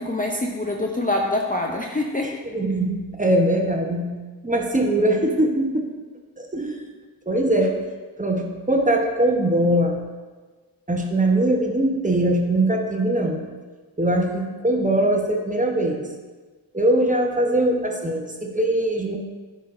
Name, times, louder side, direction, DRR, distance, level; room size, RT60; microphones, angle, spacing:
voice 1, 0.0-2.3, left 2 dB, 20° left, 0 dB, 0.7 m, -25 dB
voice 2, 2.2-4.1 4.4-5.9 6.4-6.8 7.3-7.7 8.2-10.0 10.9-13.4 14.0-16.0 16.7-19.2, right 1 dB, 15° right, 2 dB, 1.0 m, -21 dB
10.0 x 4.1 x 2.6 m, 1.3 s
supercardioid pair, 40°, 47 cm